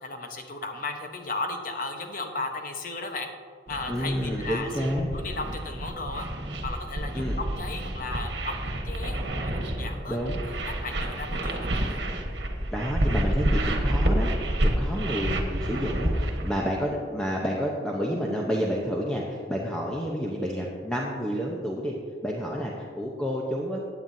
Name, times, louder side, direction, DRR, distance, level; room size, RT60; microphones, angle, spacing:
voice 1, 0.0-3.3 3.7-6.3 6.6-9.2 9.6-10.2 10.4-12.0, left 3 dB, 50° left, 4 dB, 1.1 m, -35 dB
sound 1, 3.7-16.5, right 1 dB, 75° right, 1.4 m, -29 dB
voice 2, 3.9-5.1 7.1-7.4 10.1-10.5 12.7-21.9 22.2-23.8, equal, 5° left, -3 dB, 0.8 m, -29 dB
16.0 x 9.2 x 2.7 m, 2.2 s
head